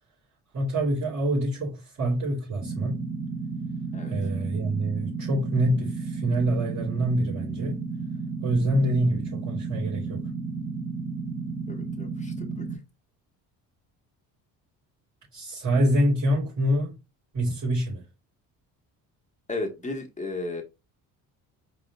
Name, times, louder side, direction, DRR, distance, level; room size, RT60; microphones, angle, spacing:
voice 1, 0.5-3.0 4.1-7.8 8.4-10.2 15.3-16.9 17.3-18.0, right 1 dB, 50° right, 2.9 m, -26 dB
sound 1, 2.6-12.8, right 4 dB, 10° right, 2.0 m, -33 dB
voice 2, 11.7-12.7 19.5-20.6, left 2 dB, 20° left, 1.5 m, -34 dB
5.0 x 3.7 x 2.4 m
supercardioid pair, 80°, 38 cm